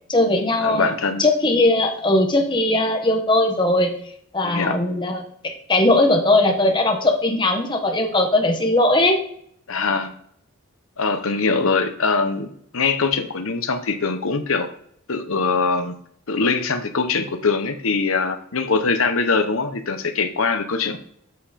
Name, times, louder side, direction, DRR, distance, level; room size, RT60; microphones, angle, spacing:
voice 1, 0.1-0.9 1.2-3.9 4.3-9.2, left 2 dB, 20° left, 3 dB, 1.2 m, -19 dB
voice 2, 0.6-1.2 4.4-4.8 9.7-10.1 11.0-14.7 15.1-16.0 16.3-21.0, left 4 dB, 70° left, 8 dB, 0.9 m, -22 dB
7.6 x 5.7 x 4.2 m, 0.66 s
head